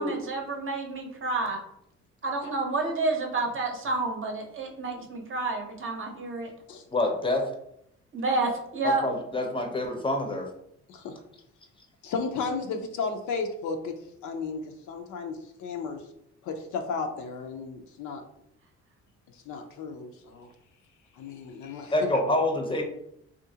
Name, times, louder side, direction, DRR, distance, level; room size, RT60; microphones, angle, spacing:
voice 1, 0.0-1.6 2.2-6.5 8.1-9.0, right 3 dB, 45° right, 2 dB, 0.7 m, -29 dB
voice 2, 6.9-7.4 8.8-10.5 21.9-22.8, left 1 dB, 15° left, 2 dB, 0.6 m, -26 dB
voice 3, 12.0-16.0 16.4-18.2 19.5-20.5 21.2-22.1, left 4 dB, 75° left, 5 dB, 0.5 m, -34 dB
2.7 x 2.5 x 2.7 m, 0.75 s
cardioid pair, 90°, 30 cm